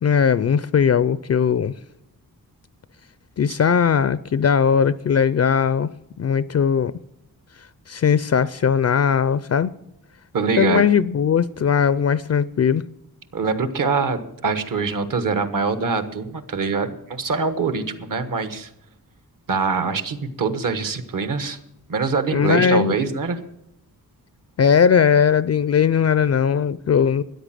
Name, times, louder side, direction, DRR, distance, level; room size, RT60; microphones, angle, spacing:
voice 1, 0.0-1.7 3.4-5.9 6.2-6.9 7.9-9.7 10.6-12.8 22.3-23.0 24.6-27.2, left 7 dB, 45° left, 0.4 m, -19 dB
voice 2, 10.3-10.9 13.3-18.7 19.5-21.6 21.9-23.4, right 4 dB, 60° right, 1.4 m, -24 dB
13.5 x 10.0 x 7.5 m
wide cardioid pair, 150°, 37 cm